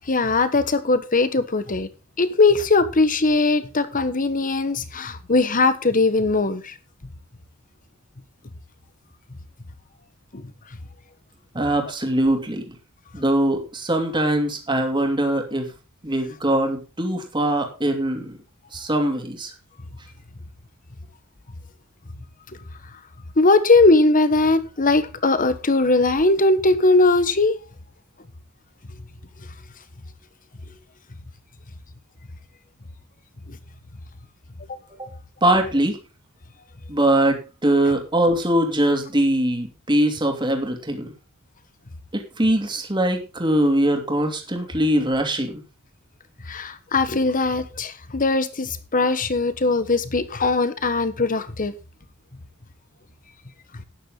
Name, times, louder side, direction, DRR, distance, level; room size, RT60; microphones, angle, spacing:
voice 1, 0.1-1.9 2.2-6.7 10.3-10.4 23.4-27.6 46.5-51.7, left 3 dB, 40° left, 1.3 m, -20 dB
voice 2, 11.5-12.7 13.1-15.7 16.0-18.3 18.7-19.5 35.0-35.1 35.4-36.0 36.9-41.1 42.1-45.6, right 1 dB, 20° right, 2.8 m, -22 dB
12.5 x 10.0 x 3.9 m
head